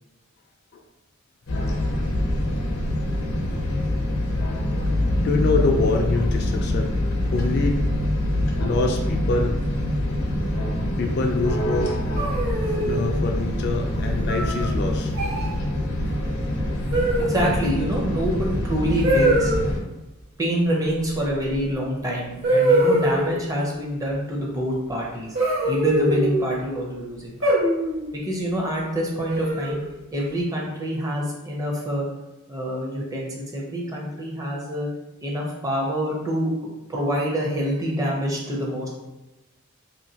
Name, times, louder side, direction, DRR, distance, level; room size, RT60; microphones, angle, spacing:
sound 1, 1.5-19.8, left 1 dB, 80° left, 0.7 m, -25 dB
voice 1, 5.2-6.9 7.3-7.8 8.6-9.6 11.0-12.1 12.7-15.1, left 3 dB, 50° left, 2 dB, 0.3 m, -25 dB
sound 2, 12.2-13.0 14.3-14.7 15.1-15.5 16.9-17.5 19.0-19.6 21.5-21.6 22.4-23.4 25.3-26.4 27.4-28.0 29.3-29.9, right 1 dB, 60° right, 1.0 m, -22 dB
voice 2, 17.2-19.5 20.4-25.4 25.6-27.5 28.1-29.8 30.1-32.1 32.5-34.9 35.2-36.5 36.9-38.9, equal, 15° right, -3 dB, 0.6 m, -26 dB
2.9 x 2.6 x 2.8 m, 1.0 s
head